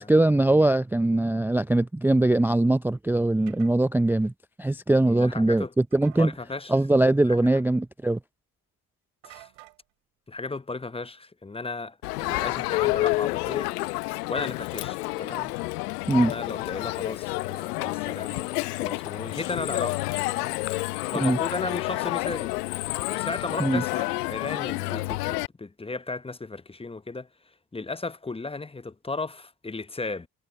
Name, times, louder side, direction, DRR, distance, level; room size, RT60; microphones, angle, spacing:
voice 1, 0.0-4.3 4.6-6.3 6.7-8.2 16.1-16.3 21.2-21.4 23.6-23.8, right 2 dB, 5° right, 0.5 m, -21 dB
sound 1, 3.5-3.7 5.9-6.3 9.2-9.8 12.3-13.1, right 21 dB, 75° right, 3.7 m, -50 dB
voice 2, 5.1-5.7 6.2-6.7 7.3-7.5 9.2-9.5 10.3-13.7 14.3-15.5 16.1-20.5 21.1-22.5 23.1-27.3 27.7-30.3, left 3 dB, 10° left, 0.8 m, -35 dB
Crowd, 12.0-25.5, left 21 dB, 85° left, 0.9 m, -29 dB
hypercardioid pair, 50°, 45 cm